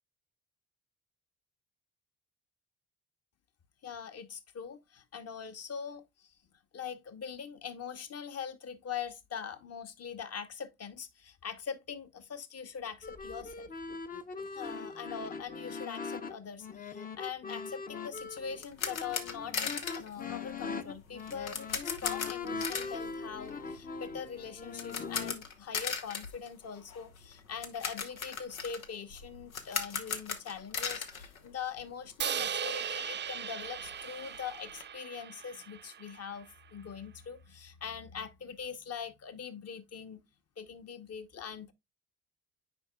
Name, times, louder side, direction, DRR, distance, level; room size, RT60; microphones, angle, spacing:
voice 1, 3.8-6.3 6.7-13.7 14.5-40.2 40.6-41.7, left 7 dB, 40° left, 1.0 m, -42 dB
sound 1, 13.0-25.4, left 5 dB, 20° left, 0.7 m, -41 dB
sound 2, 18.1-32.1 32.4-32.5 32.9-33.0 33.3-34.8, left 6 dB, 90° left, 0.7 m, -39 dB
Crash cymbal, 32.2-36.4, right 8 dB, 25° right, 0.6 m, -38 dB
8.7 x 4.9 x 2.2 m
figure-of-eight pair, 50°, 41 cm